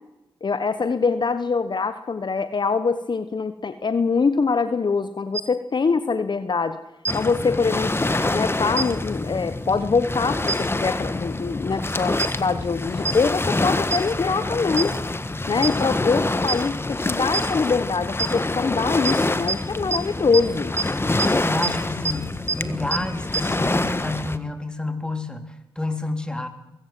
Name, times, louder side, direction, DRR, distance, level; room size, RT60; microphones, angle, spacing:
voice 1, 0.4-6.8 7.1-7.9 8.3-14.9 15.5-20.7, left 4 dB, 50° left, 11 dB, 1.1 m, -23 dB
sound 1, 5.3-5.4 7.0-7.1 8.8-8.9 10.5-10.6 12.2-12.3 13.0-13.1 13.9-14.0 14.8-14.9 15.6-15.7 16.5-16.6 17.3-17.4 18.2-18.3 19.0-19.1 19.5-19.6 19.9-20.0 20.3-20.4 20.8-20.9 21.2-21.3 21.6-21.7 22.0-22.1 22.5-22.6 22.9-23.0 23.3-23.4, right 4 dB, 30° right, 1.4 m, -23 dB
Waves surf, 7.1-24.4, left 2 dB, 25° left, 1.4 m, -26 dB
voice 2, 21.4-26.5, left 2 dB, 10° left, 6 dB, 3.6 m, -29 dB
23.0 x 16.0 x 7.7 m, 0.97 s
supercardioid pair, 45°, 10 cm